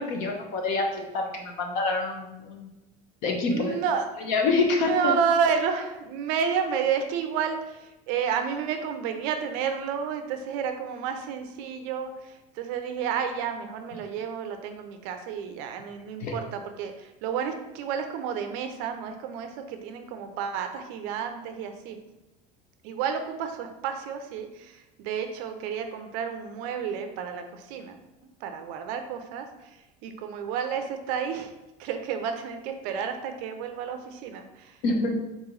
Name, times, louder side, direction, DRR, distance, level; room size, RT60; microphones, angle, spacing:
voice 1, 0.0-2.7 3.2-3.8 4.2-5.1 16.2-16.3 34.8-35.1, left 3 dB, 50° left, 2 dB, 0.8 m, -26 dB
voice 2, 3.5-4.1 4.7-22.0 22.8-28.0 28.4-31.5 31.8-34.8, right 7 dB, 50° right, 6 dB, 0.5 m, -31 dB
4.0 x 3.0 x 3.8 m, 0.99 s
cardioid pair, 180°, 17 cm